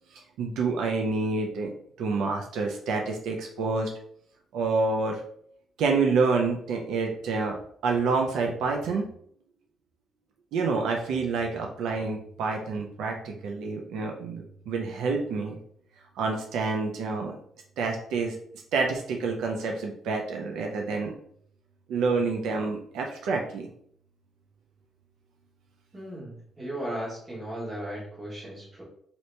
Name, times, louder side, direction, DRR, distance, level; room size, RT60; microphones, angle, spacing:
voice 1, 0.4-1.7 2.0-3.9 4.5-5.2 5.8-9.1 10.5-15.6 16.2-17.4 17.8-18.4 18.7-21.1 21.9-23.7, right 4 dB, 80° right, 1 dB, 0.4 m, -28 dB
voice 2, 25.9-28.8, right 1 dB, 20° right, -4 dB, 1.3 m, -36 dB
2.8 x 2.8 x 3.2 m, 0.65 s
cardioid pair, 120°, 0 cm